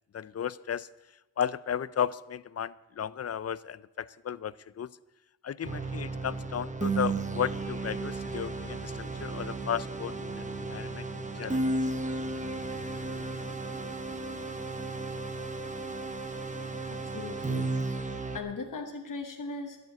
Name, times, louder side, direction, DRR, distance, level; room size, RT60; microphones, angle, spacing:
voice 1, 0.1-0.9 1.4-4.9 5.4-8.9 9.2-11.1 11.4-11.8, left 8 dB, 50° left, 19 dB, 0.4 m, -34 dB
sound 1, 5.6-18.4, right 3 dB, 25° right, 1.1 m, -34 dB
sound 2, 7.3-14.5, right 2 dB, 65° right, 2.5 m, -50 dB
voice 2, 16.8-19.8, left 4 dB, 80° left, 4 dB, 1.1 m, -39 dB
12.0 x 7.2 x 9.6 m, 1.0 s
wide cardioid pair, 90°, 31 cm